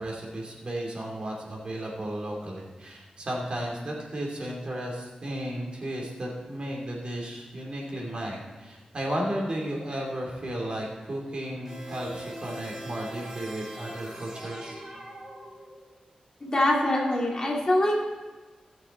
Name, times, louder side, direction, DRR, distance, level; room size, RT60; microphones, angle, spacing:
voice 1, 0.0-14.8, right 1 dB, 45° right, -2 dB, 2.6 m, -34 dB
sound 1, 11.6-16.0, equal, 20° right, 2.2 m, -42 dB
voice 2, 16.4-18.0, left 1 dB, 30° left, -2 dB, 2.2 m, -24 dB
16.5 x 6.7 x 4.2 m, 1.3 s
wide cardioid pair, 125°, 2 cm